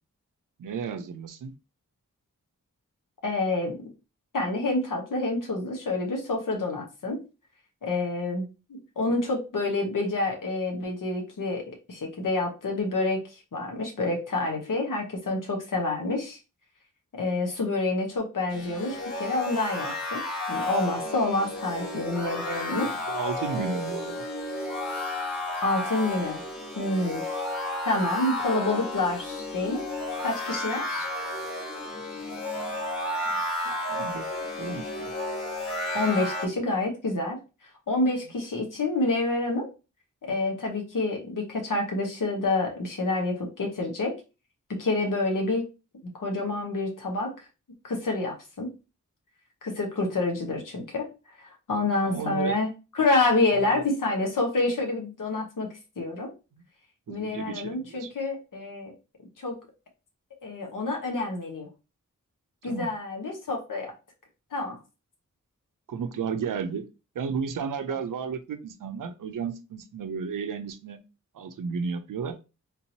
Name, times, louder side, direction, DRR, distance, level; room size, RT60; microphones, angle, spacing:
voice 1, 0.6-1.5 22.8-24.2 32.5-32.8 33.2-34.3 34.6-35.1 51.7-52.6 53.7-53.8 57.1-58.1 62.6-62.9 65.9-66.9 67.1-71.0 71.3-72.4, right 6 dB, 90° right, 0.5 m, -33 dB
voice 2, 3.2-3.8 4.3-7.2 7.8-8.5 9.0-11.6 11.9-16.4 17.1-20.2 20.5-22.9 25.6-26.4 26.8-27.2 27.8-29.8 30.2-31.1 35.9-37.4 37.9-39.7 40.2-44.1 44.7-45.6 46.1-47.3 47.8-48.7 49.6-51.1 51.4-52.7 53.0-55.7 56.0-56.3 57.1-58.9 59.4-59.5 60.4-61.7 62.6-63.9 64.5-64.8, left 2 dB, 85° left, 1.1 m, -28 dB
sound 1, 18.5-36.5, left 1 dB, 65° left, 1.9 m, -32 dB
3.6 x 2.9 x 2.7 m
wide cardioid pair, 60°, 31 cm